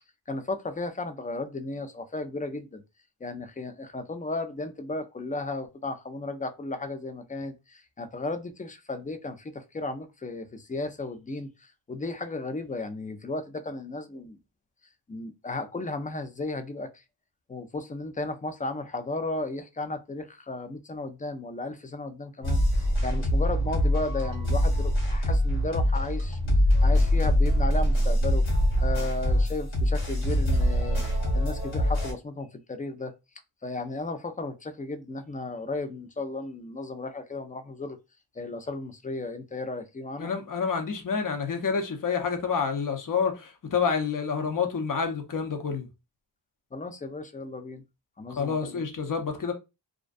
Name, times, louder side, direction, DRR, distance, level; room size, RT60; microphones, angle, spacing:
voice 1, 0.3-2.8 3.2-14.4 15.1-17.0 17.5-26.4 26.8-28.4 28.8-31.0 31.3-33.1 33.6-38.0 38.4-40.3 46.7-47.8 48.2-48.8, left 2 dB, 20° left, 0.3 m, -34 dB
sound 1, 22.4-32.1, equal, 75° left, 1.3 m, -24 dB
voice 2, 40.2-45.9 48.4-49.5, left 5 dB, 45° left, 0.7 m, -28 dB
2.4 x 2.2 x 2.4 m
cardioid pair, 60°, 46 cm